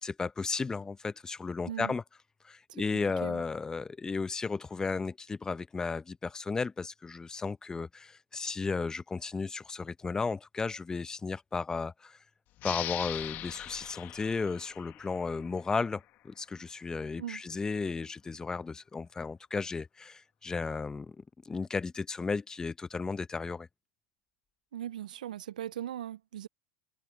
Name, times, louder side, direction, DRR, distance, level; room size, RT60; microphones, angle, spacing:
voice 1, 0.0-2.0 2.4-12.2 12.6-21.2 21.4-23.7, left 4 dB, 15° left, 0.7 m, -34 dB
voice 2, 1.6-2.0 2.7-2.8 3.2-3.4 17.2-17.4 24.7-26.5, right 11 dB, 90° right, 0.3 m, -39 dB
sound 1, 12.6-15.8, left 15 dB, 45° left, 1.6 m, -40 dB
hypercardioid pair, 105°, 4 cm